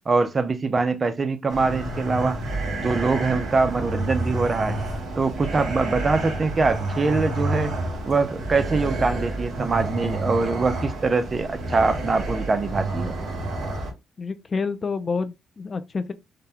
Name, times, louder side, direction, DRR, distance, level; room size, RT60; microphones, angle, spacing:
voice 1, 0.1-2.4 2.8-4.8 5.2-7.7 8.1-13.2, right 3 dB, 35° right, 0.6 m, -23 dB
sound 1, 1.5-13.9, right 2 dB, 65° right, 2.3 m, -29 dB
voice 2, 14.2-16.1, left 4 dB, 35° left, 0.4 m, -28 dB
5.0 x 2.2 x 2.8 m
cardioid pair, 90°, 0 cm